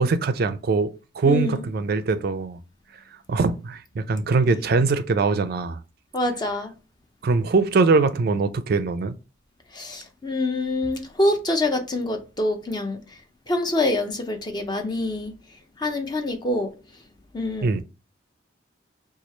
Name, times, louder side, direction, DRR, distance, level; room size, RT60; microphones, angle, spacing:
voice 1, 0.0-2.6 3.3-5.8 7.2-9.2 17.6-17.8, right 4 dB, 55° right, 0.4 m, -22 dB
voice 2, 1.2-1.7 6.1-6.7 9.7-13.0 13.5-15.3 15.8-16.7 17.3-17.8, left 2 dB, 25° left, 0.5 m, -25 dB
3.0 x 2.3 x 4.2 m
head